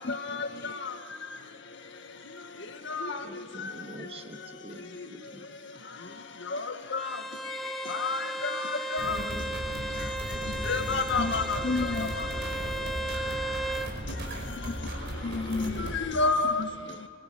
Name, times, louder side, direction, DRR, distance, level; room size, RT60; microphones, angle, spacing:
voice 1, 0.0-0.7 11.2-12.2 14.5-14.9 15.2-16.0 16.6-17.1, left 3 dB, 50° left, 0.5 m, -34 dB
voice 2, 3.2-5.5 10.8-11.0 16.9-17.0, right 1 dB, 30° right, 1.5 m, -46 dB
Bowed string instrument, 7.0-13.9, right 1 dB, ahead, 1.0 m, -35 dB
voice 3, 8.0-8.7 8.9-9.2 10.7-11.6 16.1-16.6, left 3 dB, 65° left, 1.9 m, -28 dB
sound 1, 9.0-16.0, equal, 60° right, 5.0 m, -36 dB
25.0 x 21.5 x 8.6 m
head